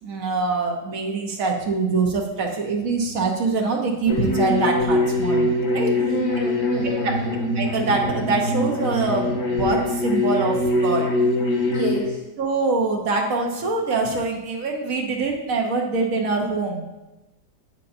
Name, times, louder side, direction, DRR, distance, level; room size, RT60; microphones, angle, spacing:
voice 1, 0.0-6.1 7.0-11.1 12.4-16.9, right 3 dB, 60° right, 1 dB, 1.3 m, -24 dB
sound 1, 4.1-12.0, left 1 dB, 85° left, 2.3 m, -23 dB
voice 2, 6.0-7.4 11.7-12.2, equal, 40° right, -5 dB, 2.2 m, -28 dB
8.1 x 6.7 x 2.6 m, 1.0 s
omnidirectional pair, 1.8 m